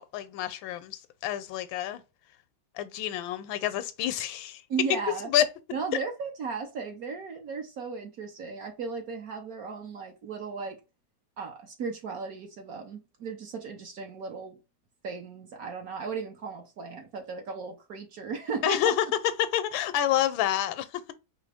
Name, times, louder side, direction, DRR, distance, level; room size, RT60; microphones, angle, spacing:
voice 1, 0.0-2.0 2.8-4.6 5.1-5.4 18.6-19.1 19.4-21.0, left 11 dB, 80° left, 1.3 m, -28 dB
voice 2, 4.7-5.3 5.7-10.8 11.4-14.6 15.0-18.9, right 5 dB, 60° right, 1.1 m, -36 dB
4.9 x 2.9 x 3.4 m
omnidirectional pair, 2.1 m